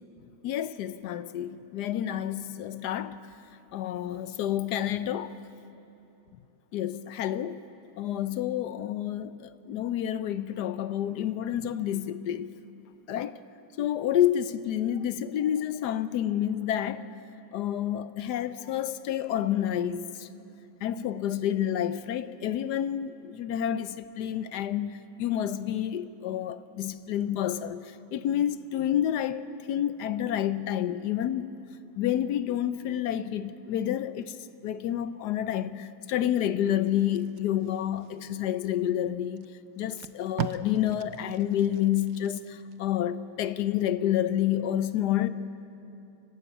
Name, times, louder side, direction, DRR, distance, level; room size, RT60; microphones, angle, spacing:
voice 1, 0.4-3.2 3.7-5.3 6.7-7.6 8.0-12.5 13.1-13.3 13.8-17.1 17.5-20.1 20.8-27.8 28.1-31.5 32.0-34.3 34.6-39.5 39.8-45.3, left 11 dB, 70° left, 1.0 m, -29 dB
Packing tape duct tape, 37.0-38.7 39.4-39.5 39.8-42.8 43.2-43.4, right 9 dB, 70° right, 0.9 m, -40 dB
29.5 x 12.5 x 8.5 m
omnidirectional pair, 2.2 m